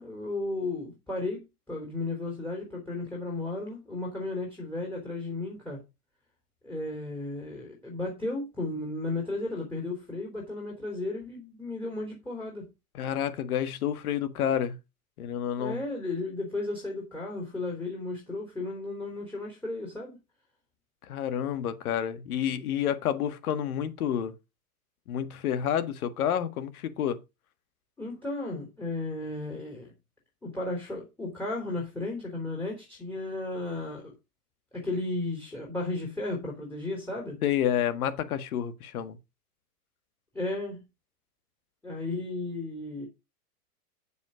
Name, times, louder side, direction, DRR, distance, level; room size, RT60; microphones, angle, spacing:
voice 1, 0.0-1.4 1.7-5.8 6.6-12.7 15.6-20.2 22.4-22.7 28.0-29.9 30.4-34.1 34.7-37.4 40.3-40.8 41.8-43.1, left 2 dB, 5° left, 3.3 m, -34 dB
voice 2, 12.9-14.8 15.2-15.8 21.1-24.3 25.1-27.2 37.4-39.2, left 9 dB, 65° left, 1.8 m, -29 dB
8.6 x 7.3 x 5.0 m
hypercardioid pair, 125°, 47 cm